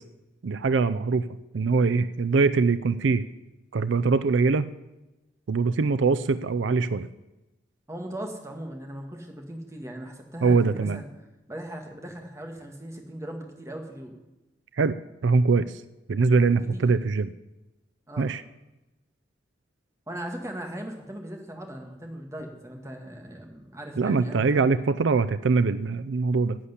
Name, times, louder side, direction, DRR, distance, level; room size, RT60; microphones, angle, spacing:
voice 1, 0.4-1.3 1.5-3.2 3.7-4.7 5.5-7.1 10.4-11.0 14.8-15.0 15.2-15.7 16.1-17.3 18.2-18.4 24.0-26.6, right 4 dB, 80° right, 14 dB, 0.5 m, -22 dB
voice 2, 7.9-11.1 11.5-14.1 16.7-16.9 18.1-18.3 20.1-24.8, right 1 dB, 15° right, 3 dB, 1.7 m, -38 dB
11.0 x 8.4 x 8.1 m, 1.0 s
head